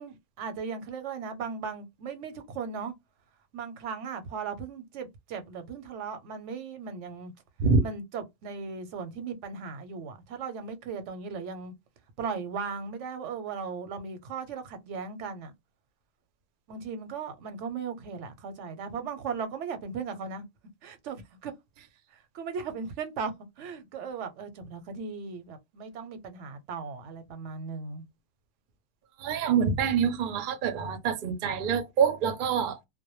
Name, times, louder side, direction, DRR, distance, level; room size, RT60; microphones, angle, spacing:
voice 1, 0.0-2.9 3.5-7.3 7.8-11.7 12.2-15.5 16.7-20.4 20.8-21.5 22.1-23.3 23.6-28.0, right 5 dB, 85° right, 0.9 m, -37 dB
voice 2, 29.2-32.8, right 6 dB, 55° right, 0.6 m, -26 dB
2.1 x 2.1 x 2.9 m
omnidirectional pair, 1.2 m